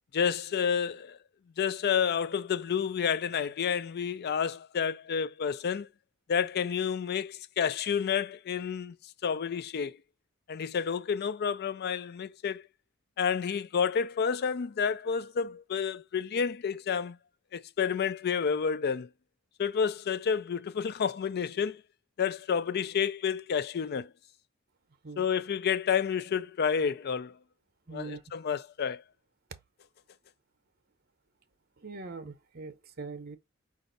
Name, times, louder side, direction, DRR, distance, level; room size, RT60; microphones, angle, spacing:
voice 1, 0.1-1.2 1.6-5.9 6.3-9.0 9.2-10.0 10.5-12.6 13.2-17.2 17.5-19.1 19.6-21.8 22.2-24.1 25.2-27.3 27.9-29.0, left 7 dB, 50° left, 0.4 m, -30 dB
voice 2, 27.9-28.2 31.8-33.4, right 3 dB, 50° right, 0.7 m, -42 dB
5.2 x 2.4 x 3.8 m
head